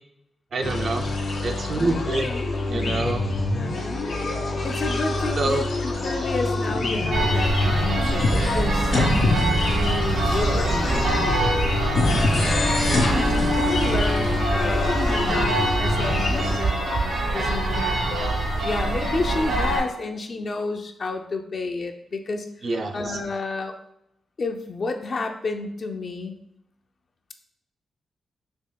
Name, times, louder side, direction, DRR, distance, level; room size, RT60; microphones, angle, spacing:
voice 1, 0.5-1.1 1.4-2.3 2.7-3.3 5.4-5.6 6.7-7.0 12.9-13.4 22.6-23.2, right 2 dB, 50° right, 4 dB, 0.4 m, -27 dB
sound 1, 0.6-16.6, left 2 dB, 75° left, 0.9 m, -25 dB
voice 2, 1.8-2.4 3.0-3.1 3.5-3.8 4.6-11.7 12.0-18.4 18.6-23.8 24.4-26.3, left 3 dB, 40° left, 5 dB, 0.4 m, -31 dB
sound 2, 7.1-19.8, right 2 dB, 85° right, 1.3 m, -24 dB
5.3 x 2.9 x 2.2 m, 0.79 s
wide cardioid pair, 135°, 0 cm